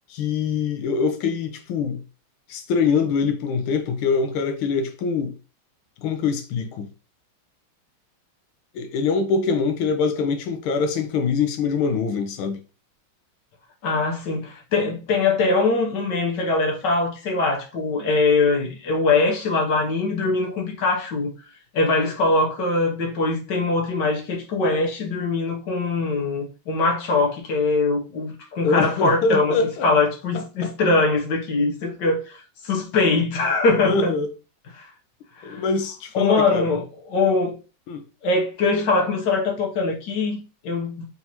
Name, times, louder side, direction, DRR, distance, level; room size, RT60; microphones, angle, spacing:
voice 1, 0.1-2.0 2.5-5.3 6.0-6.9 8.7-12.6 28.6-29.9 30.3-30.7 33.8-34.3 35.4-36.7 37.9-38.0, left 5 dB, 85° left, 1.6 m, -24 dB
voice 2, 13.8-21.3 21.7-29.6 29.8-34.1 34.7-34.9 35.4-35.6 36.1-37.6 38.2-41.0, left 3 dB, 65° left, 1.5 m, -22 dB
4.1 x 3.6 x 2.9 m
omnidirectional pair, 2.3 m